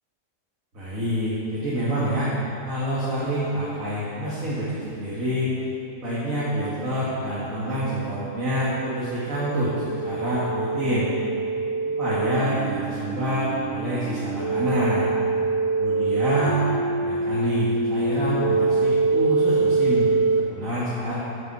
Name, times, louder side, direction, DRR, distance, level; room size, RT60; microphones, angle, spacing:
voice 1, 0.7-2.3 2.6-5.5 6.0-11.1 11.8-15.1 15.8-16.7 17.0-20.1 20.4-21.1, equal, 80° right, -10 dB, 2.4 m, -27 dB
sound 1, 7.2-20.4, right 3 dB, 25° right, 0.7 m, -25 dB
9.7 x 8.2 x 5.9 m, 2.8 s
omnidirectional pair, 1.4 m